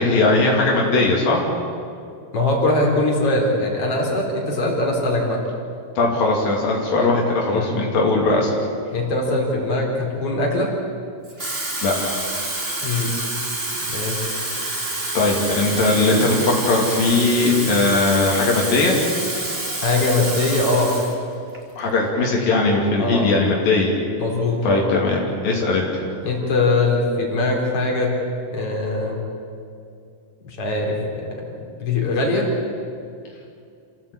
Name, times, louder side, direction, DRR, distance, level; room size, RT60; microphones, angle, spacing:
voice 1, 0.0-1.4 6.0-8.5 11.8-12.2 15.1-19.0 21.8-24.0 24.6-26.1, left 2 dB, 75° left, -2 dB, 4.6 m, -19 dB
voice 2, 2.3-5.4 7.5-7.7 8.9-10.7 12.8-13.1 13.8-14.4 19.8-21.0 23.0-23.3 24.2-24.8 26.2-28.1 28.5-29.2 30.5-32.5, left 2 dB, 40° left, -1 dB, 4.9 m, -22 dB
Water tap faucet / Fill (with liquid), 11.2-21.2 21.5-21.8, right 2 dB, 20° right, 2.6 m, -27 dB
28.0 x 16.5 x 8.6 m, 2.4 s
omnidirectional pair, 4.1 m